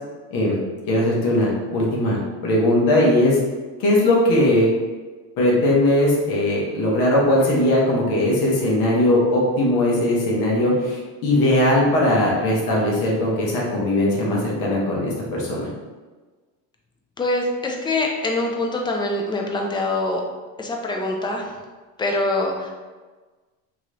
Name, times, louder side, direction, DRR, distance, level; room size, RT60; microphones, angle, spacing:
voice 1, 0.9-3.4 3.8-4.7 5.4-15.7, left 1 dB, 60° left, -4 dB, 1.1 m, -19 dB
voice 2, 17.2-20.2 20.6-21.5 22.0-22.7, left 2 dB, 10° left, 1 dB, 0.5 m, -24 dB
3.0 x 2.9 x 2.6 m, 1.3 s
supercardioid pair, 95°, 40 cm